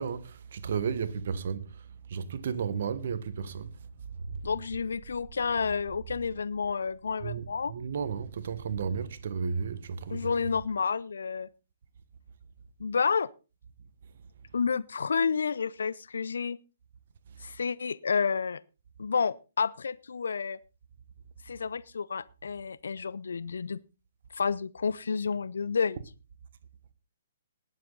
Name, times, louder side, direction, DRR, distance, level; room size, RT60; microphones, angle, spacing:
voice 1, 0.0-4.6 7.2-10.5 14.2-14.5 17.3-17.6, right 6 dB, 60° right, 1.4 m, -34 dB
voice 2, 4.4-7.7 10.1-11.5 12.8-13.3 14.5-16.6 17.4-18.6 19.0-20.6 21.5-23.8 24.3-26.0, left 5 dB, 75° left, 0.6 m, -30 dB
19.5 x 7.6 x 4.0 m
hypercardioid pair, 130°, 0 cm